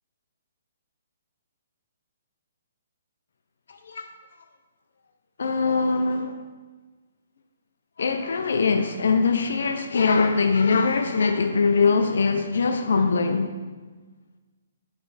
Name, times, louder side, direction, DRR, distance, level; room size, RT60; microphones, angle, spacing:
voice 1, 5.4-6.3 8.0-13.5, left 4 dB, 75° left, 0.4 m, -22 dB
7.9 x 3.2 x 3.9 m
hypercardioid pair, 160°, 0 cm